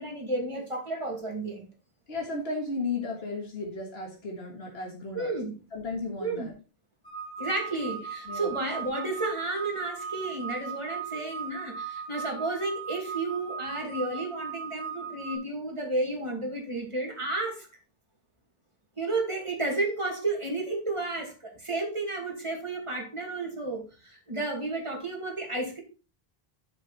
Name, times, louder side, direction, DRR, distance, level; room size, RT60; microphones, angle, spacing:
voice 1, 0.0-1.7 5.1-5.6 6.2-6.5 7.4-17.7 19.0-25.8, right 2 dB, 30° right, 0 dB, 2.5 m, -32 dB
voice 2, 2.1-5.3 5.7-6.5 8.3-8.6, left 3 dB, 80° left, 0 dB, 2.0 m, -34 dB
sound 1, 7.0-15.4, right 6 dB, 65° left, 3.6 m, -38 dB
7.4 x 6.6 x 4.1 m, 0.32 s
omnidirectional pair, 1.0 m